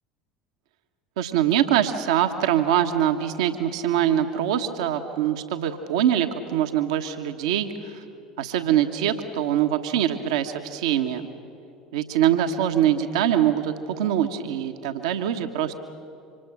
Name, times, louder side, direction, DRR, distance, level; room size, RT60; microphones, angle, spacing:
voice 1, 1.2-8.0 8.4-11.3 11.9-15.7, right 10 dB, 65° right, 6 dB, 1.2 m, -23 dB
26.5 x 25.5 x 6.1 m, 2.8 s
figure-of-eight pair, 65°, 3 cm